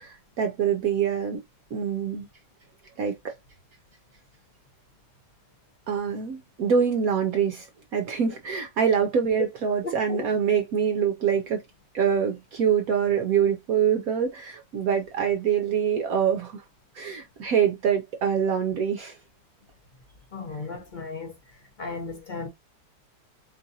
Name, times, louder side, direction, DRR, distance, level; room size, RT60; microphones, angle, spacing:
voice 1, 0.0-1.4 1.7-2.3 3.0-3.3 5.9-7.7 7.9-11.6 11.9-16.6 16.9-19.2, right 7 dB, 65° right, 1.0 m, -25 dB
voice 2, 9.8-10.2 20.3-21.3 21.8-22.5, left 4 dB, 40° left, 0.7 m, -35 dB
4.5 x 2.5 x 2.7 m
omnidirectional pair, 1.8 m